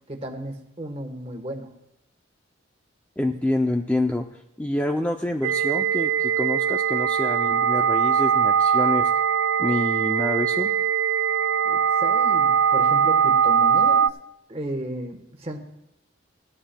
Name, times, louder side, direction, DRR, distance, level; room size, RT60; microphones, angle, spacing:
voice 1, 0.1-1.7 11.6-14.1 14.5-15.6, right 1 dB, 30° right, 4 dB, 1.1 m, -34 dB
voice 2, 3.2-4.3 4.6-9.1 9.6-10.7, left 1 dB, 5° left, 3 dB, 0.4 m, -27 dB
sound 1, 5.4-14.1, right 7 dB, 65° right, 0.3 m, -21 dB
18.0 x 13.0 x 2.2 m, 0.83 s
head